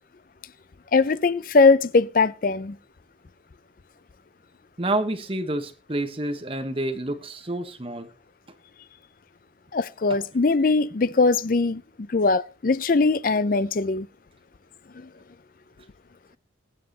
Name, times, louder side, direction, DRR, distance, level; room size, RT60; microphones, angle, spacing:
voice 1, 0.9-2.8 9.7-11.8 12.1-14.1 15.0-15.1, left 3 dB, 45° left, 0.5 m, -21 dB
voice 2, 4.8-8.1 10.1-10.2, right 1 dB, 30° right, 1.2 m, -28 dB
22.0 x 7.4 x 2.9 m
head